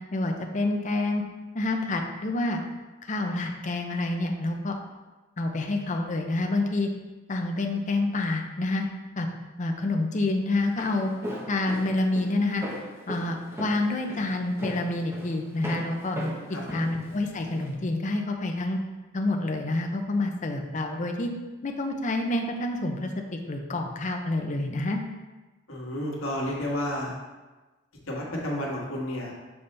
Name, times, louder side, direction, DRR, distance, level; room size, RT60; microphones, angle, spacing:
voice 1, 0.1-1.2 1.5-2.6 3.1-4.8 5.4-6.9 7.3-8.9 9.2-9.3 9.6-11.1 11.5-12.6 13.1-16.2 16.7-18.8 19.1-21.3 21.6-25.0, left 2 dB, 35° left, 3 dB, 0.6 m, -28 dB
Walk footsteps, 10.6-17.7, equal, 15° right, 0.9 m, -37 dB
voice 2, 25.7-27.2 28.1-29.3, left 1 dB, 85° left, -3 dB, 1.5 m, -31 dB
7.0 x 4.1 x 3.3 m, 1.2 s
head